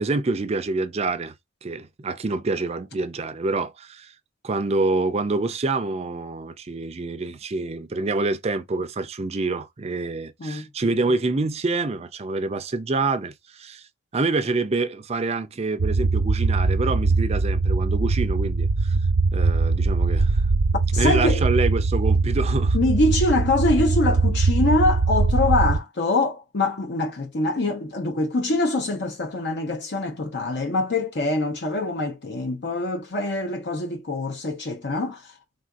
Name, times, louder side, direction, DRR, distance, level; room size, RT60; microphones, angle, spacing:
voice 1, 0.0-1.3 1.6-4.1 4.4-13.9 14.1-19.0 19.3-20.4 20.9-22.8, right 3 dB, 30° right, 0.4 m, -26 dB
sound 1, 15.8-25.8, right 3 dB, 85° right, 0.6 m, -21 dB
voice 2, 20.9-21.4 22.7-35.3, left 2 dB, 60° left, 0.7 m, -24 dB
3.6 x 2.5 x 2.3 m
head